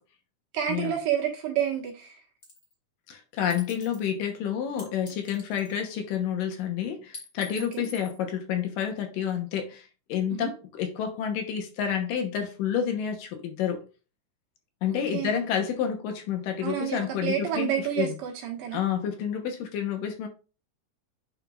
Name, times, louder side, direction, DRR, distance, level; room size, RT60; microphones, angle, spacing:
voice 1, 0.5-2.2 7.6-7.8 10.3-10.5 15.1-15.4 16.6-18.8, right 10 dB, 70° right, 3.0 m, -29 dB
sound 1, 2.4-2.7 3.5-4.1 4.8-6.0 7.1-8.2, left 3 dB, 35° left, 1.9 m, -45 dB
voice 2, 3.1-13.8 14.8-18.2 18.7-20.3, left 8 dB, 75° left, 2.6 m, -29 dB
9.0 x 4.6 x 2.4 m
omnidirectional pair, 4.0 m